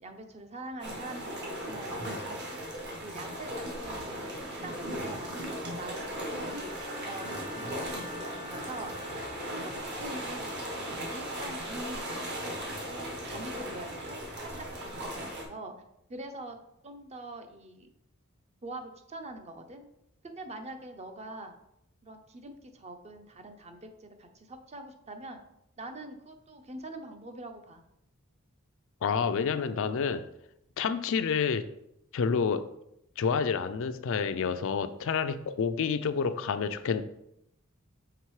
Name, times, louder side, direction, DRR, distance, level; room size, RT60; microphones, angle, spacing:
voice 1, 0.0-2.4 3.0-4.2 4.6-5.3 5.6-6.1 6.4-6.7 7.1-8.9 9.6-12.6 12.9-14.5 14.8-15.8 16.1-16.6 16.8-17.9 18.6-19.8 20.2-21.6 22.0-25.4 25.8-27.8, right 2 dB, 30° right, 6 dB, 0.6 m, -44 dB
sound 1, 0.8-15.4, equal, 50° right, 1.4 m, -37 dB
Bowed string instrument, 6.5-10.2, equal, 75° right, 1.7 m, -46 dB
voice 2, 29.0-30.3 30.8-31.6 32.1-32.7 33.2-37.0, left 6 dB, 65° left, 11 dB, 0.4 m, -28 dB
5.9 x 3.5 x 4.7 m, 0.79 s
head